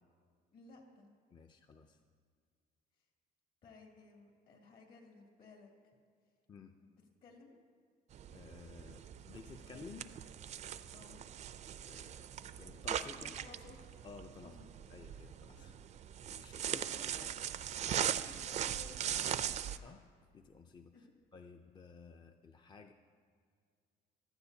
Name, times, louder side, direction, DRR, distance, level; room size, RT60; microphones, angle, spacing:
voice 1, 0.5-1.1 3.6-5.9 6.8-7.5 10.9-11.3 13.1-14.0 14.4-14.7 16.5-19.8 20.9-21.0, left 4 dB, 60° left, 1 dB, 2.5 m, -58 dB
voice 2, 1.3-2.0 6.5-6.7 8.3-10.1 11.9-13.3 14.0-14.6 14.9-15.7 16.3-16.9 19.8-20.0 20.3-21.1 21.3-22.9, left 5 dB, 25° left, 6 dB, 0.4 m, -54 dB
sound 1, 8.1-19.8, right 9 dB, 45° right, 0.4 m, -40 dB
16.0 x 12.5 x 2.7 m, 2.1 s
cardioid pair, 110°, 17 cm